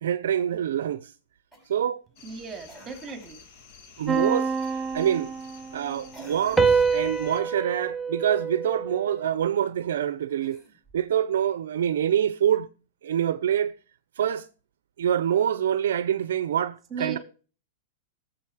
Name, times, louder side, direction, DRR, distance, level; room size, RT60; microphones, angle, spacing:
voice 1, 0.0-1.1 1.7-2.0 4.0-5.3 5.7-10.6 10.9-12.7 13.0-13.7 14.2-14.5 15.0-17.2, right 9 dB, 80° right, 0.6 m, -26 dB
Cough, 1.5-1.9 2.7-3.4 4.6-4.9 6.1-7.2 10.3-11.1 12.5-12.6, equal, 15° left, 5.1 m, -49 dB
sound 1, 2.2-7.4, left 5 dB, 55° left, 2.1 m, -51 dB
voice 2, 2.2-3.4 3.9-4.1 16.9-17.2, right 5 dB, 20° right, 2.9 m, -37 dB
sound 2, 4.1-5.9 6.6-9.2, right 5 dB, 5° right, 0.9 m, -26 dB
14.0 x 7.4 x 4.9 m
hypercardioid pair, 120°, 0 cm